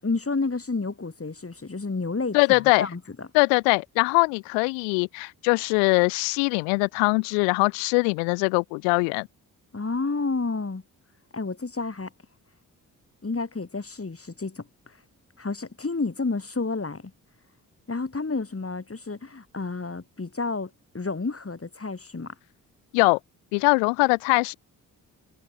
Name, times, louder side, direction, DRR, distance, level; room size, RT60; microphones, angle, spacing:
voice 1, 0.0-3.3 9.7-10.8 11.3-12.1 13.2-14.7 15.4-17.1 17.9-22.3, left 3 dB, 30° left, 7.5 m, -30 dB
voice 2, 2.3-2.9 3.3-9.3 22.9-23.2 23.5-24.5, left 40 dB or more, 85° left, 1.1 m, -22 dB
hypercardioid pair, 40°, 43 cm